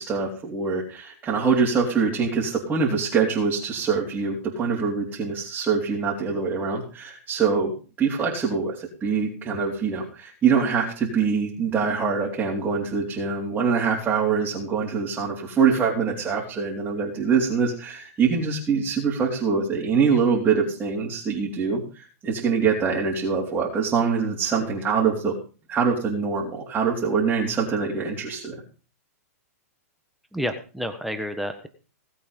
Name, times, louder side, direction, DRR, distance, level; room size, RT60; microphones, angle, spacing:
voice 1, 0.0-7.7 8.0-25.3 25.7-28.6, right 5 dB, 20° right, -4 dB, 3.7 m, -24 dB
voice 2, 30.3-31.7, equal, ahead, 6 dB, 1.4 m, -30 dB
18.5 x 8.5 x 5.4 m, 0.37 s
hypercardioid pair, 130°, 8 cm